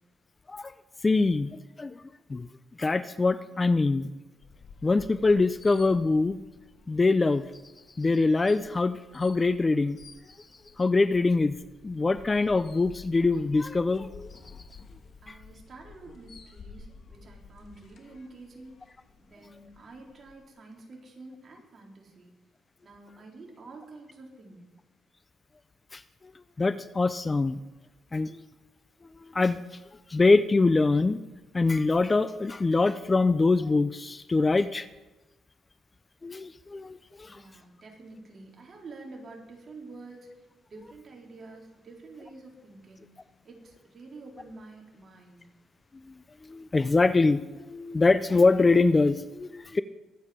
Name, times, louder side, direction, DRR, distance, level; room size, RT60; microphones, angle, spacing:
voice 1, 1.0-2.0 2.3-2.5 2.8-4.1 4.8-6.4 6.9-7.4 8.0-10.0 10.8-11.6 11.8-14.3 15.3-15.4 25.9-26.0 26.6-27.6 28.1-28.4 29.3-29.6 30.1-31.2 31.5-34.9 36.2-37.4 46.1-46.2 46.5-49.8, left 3 dB, 25° left, 14 dB, 0.5 m, -24 dB
sound 1, 4.4-20.3, left 4 dB, 55° left, 2.3 m, -52 dB
voice 2, 15.2-18.9 19.2-22.3 22.8-24.6 37.2-45.5, right 3 dB, 45° right, 0 dB, 3.9 m, -48 dB
22.5 x 8.8 x 5.1 m, 1.1 s
cardioid pair, 90°, 0 cm